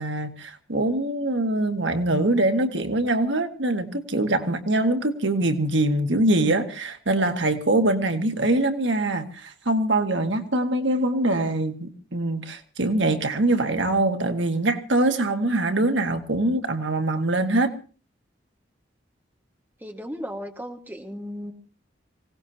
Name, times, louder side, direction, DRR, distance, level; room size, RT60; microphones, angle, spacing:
voice 1, 0.0-17.7, right 2 dB, 80° right, 6 dB, 1.7 m, -23 dB
voice 2, 19.8-21.5, equal, 10° right, 3 dB, 1.7 m, -35 dB
25.5 x 17.5 x 2.8 m, 0.37 s
head